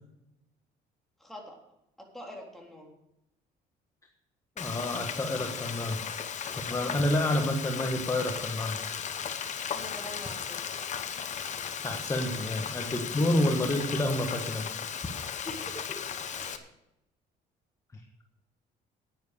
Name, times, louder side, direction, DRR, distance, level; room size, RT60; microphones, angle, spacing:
voice 1, 1.2-1.6 2.0-2.9 9.7-10.7 12.3-12.4 15.5-16.0 16.4-16.7, left 1 dB, ahead, -1 dB, 3.6 m, -44 dB
Frying (food), 4.6-16.6, left 7 dB, 45° left, 1.0 m, -36 dB
voice 2, 4.6-6.0 6.7-8.8 11.8-14.7, left 1 dB, 20° left, 3 dB, 1.4 m, -29 dB
10.5 x 9.5 x 6.6 m, 0.86 s
cardioid pair, 110°, 17 cm